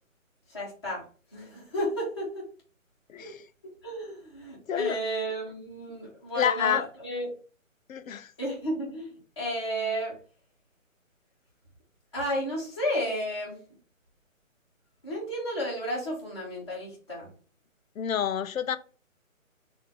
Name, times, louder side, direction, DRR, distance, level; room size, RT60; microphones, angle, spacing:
voice 1, 0.5-1.0 1.3-2.5 3.2-3.3 3.8-7.3 8.4-10.1 12.1-13.6 15.0-17.3, equal, 20° left, 0.9 m, -32 dB
voice 2, 3.1-3.4 4.7-5.0 6.4-6.8 7.9-8.3 18.0-18.8, left 8 dB, 75° left, 0.5 m, -28 dB
3.7 x 2.6 x 4.0 m
hypercardioid pair, 175°, 41 cm